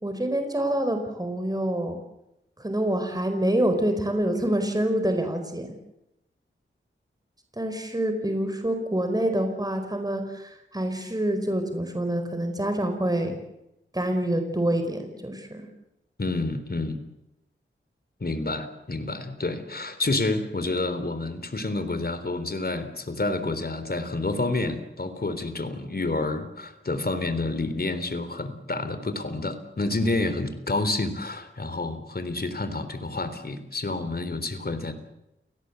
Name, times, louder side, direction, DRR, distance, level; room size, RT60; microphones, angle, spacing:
voice 1, 0.0-2.0 2.6-5.7 7.6-13.4 13.9-15.7, right 1 dB, 20° right, 6 dB, 4.9 m, -26 dB
voice 2, 16.2-17.0 18.2-34.9, left 2 dB, 50° left, 10 dB, 3.8 m, -29 dB
30.0 x 19.0 x 8.2 m, 0.88 s
cardioid pair, 50°, 21 cm